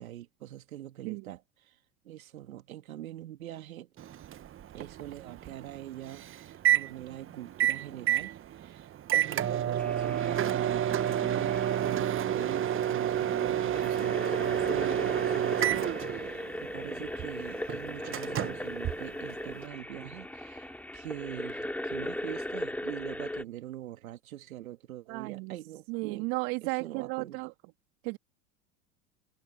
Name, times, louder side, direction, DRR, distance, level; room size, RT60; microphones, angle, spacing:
voice 1, 0.0-1.8 2.0-3.9 4.7-26.3 26.6-27.4, right 13 dB, 80° right, 2.1 m, -44 dB
Microwave oven, 4.0-19.7, right 11 dB, 30° right, 1.1 m, -30 dB
sound 1, 9.8-23.4, left 1 dB, 5° left, 2.2 m, -38 dB
voice 2, 25.1-25.6 25.9-27.5 28.0-28.2, right 28 dB, 60° right, 1.7 m, -34 dB
hypercardioid pair, 85°, 41 cm